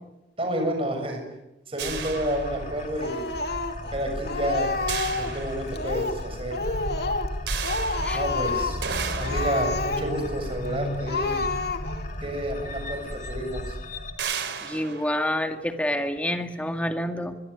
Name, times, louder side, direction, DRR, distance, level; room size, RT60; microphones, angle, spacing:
voice 1, 0.4-1.2 1.7-3.2 3.9-4.7 5.0-6.6 8.1-8.8 9.2-11.4 12.2-13.8, right 1 dB, 30° right, 4 dB, 7.0 m, -30 dB
sound 1, 1.8-14.1, left 1 dB, 45° left, 3.7 m, -34 dB
sound 2, 1.8-3.1 4.9-6.2 7.5-11.9 12.8-12.9 13.3-13.5 14.2-16.2, right 6 dB, 75° right, 3.5 m, -35 dB
Speech, 3.0-3.9 4.3-5.4 5.7-6.2 6.5-7.4 7.6-8.8 9.2-10.3 10.6-10.7 11.1-12.1, left 3 dB, 60° left, 2.6 m, -29 dB
voice 2, 14.6-17.4, left 1 dB, 5° left, 6 dB, 2.1 m, -28 dB
23.5 x 23.0 x 9.6 m, 0.94 s
head